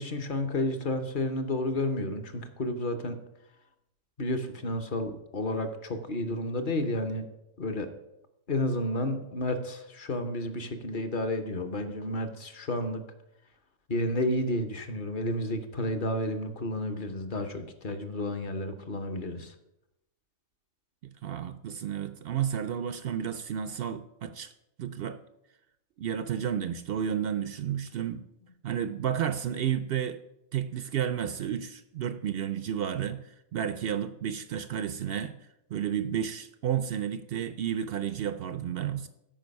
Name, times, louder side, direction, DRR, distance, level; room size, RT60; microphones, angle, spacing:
voice 1, 0.0-3.2 4.2-7.2 7.6-7.9 8.5-13.0 13.9-19.5, left 1 dB, 45° left, 7 dB, 1.0 m, -31 dB
voice 2, 21.0-24.5 24.8-25.2 26.0-28.2 28.6-30.2 30.5-35.4 35.7-39.1, right 9 dB, 65° right, 11 dB, 0.6 m, -32 dB
13.0 x 5.1 x 5.3 m, 0.87 s
omnidirectional pair, 1.4 m